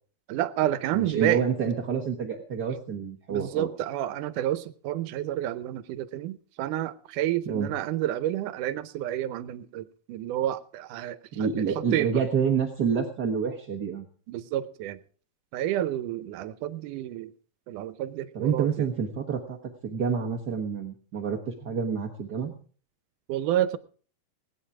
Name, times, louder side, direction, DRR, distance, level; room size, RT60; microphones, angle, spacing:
voice 1, 0.3-1.4 3.3-11.5 11.9-12.2 14.3-15.0 15.5-17.3 17.7-18.9 23.3-23.8, right 12 dB, 85° right, 14 dB, 2.3 m, -29 dB
voice 2, 0.9-3.7 7.5-7.7 11.3-14.1 18.3-19.6 19.8-22.5, right 6 dB, 50° right, 0 dB, 1.2 m, -28 dB
19.0 x 9.9 x 4.8 m, 0.43 s
omnidirectional pair, 3.5 m